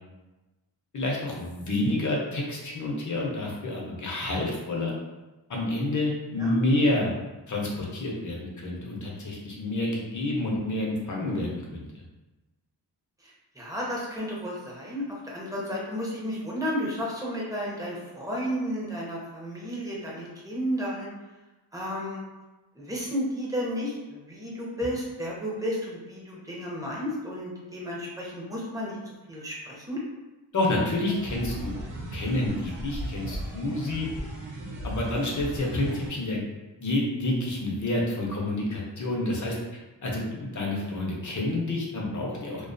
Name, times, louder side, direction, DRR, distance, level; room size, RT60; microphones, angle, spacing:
voice 1, 0.9-4.9 5.5-7.1 7.5-12.0 30.5-31.8 32.1-34.1 34.8-36.4 36.8-39.6 40.0-42.7, left 1 dB, 45° left, -2 dB, 0.6 m, -28 dB
voice 2, 13.2-21.1 21.7-22.2 22.8-30.0, equal, 10° right, -4 dB, 0.6 m, -33 dB
sound 1, 31.1-36.1, right 1 dB, 85° right, 0.6 m, -36 dB
2.3 x 2.2 x 2.5 m, 1.1 s
wide cardioid pair, 100°, 42 cm